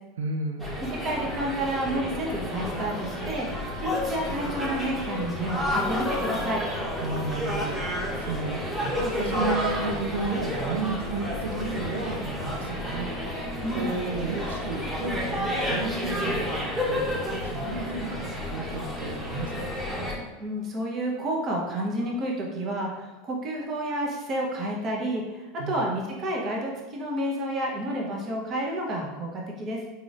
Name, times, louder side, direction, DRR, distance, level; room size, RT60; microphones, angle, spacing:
voice 1, 0.2-0.7 7.0-19.7 25.6-25.8, right 3 dB, 85° right, 4 dB, 0.4 m, -33 dB
sound 1, 0.6-20.2, left 1 dB, 5° right, 1.0 m, -30 dB
voice 2, 1.0-3.5 3.8-6.6 13.6-13.9 20.4-29.8, right 1 dB, 40° right, -1 dB, 0.9 m, -30 dB
4.0 x 2.9 x 2.5 m, 1.1 s
hypercardioid pair, 95°, 0 cm